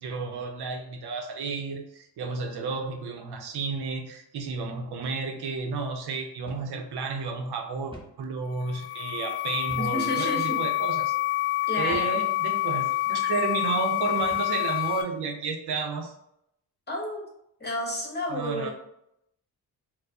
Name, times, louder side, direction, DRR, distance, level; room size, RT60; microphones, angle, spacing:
voice 1, 0.0-11.1 11.8-16.1 18.3-18.7, right 4 dB, 80° right, 4 dB, 0.7 m, -32 dB
sound 1, 6.5-6.8 7.1-7.2 7.9-8.2 9.7-10.0 10.7-10.9 11.9-12.2 13.0-13.2 14.2-14.6, right 1 dB, 15° right, 0.7 m, -46 dB
sound 2, 8.5-15.0, left 17 dB, 70° left, 0.5 m, -27 dB
voice 2, 9.8-10.6 11.6-12.2 16.9-17.3 17.6-18.7, left 1 dB, 25° left, -1 dB, 0.9 m, -31 dB
4.4 x 2.1 x 2.6 m, 0.77 s
wide cardioid pair, 115°, 39 cm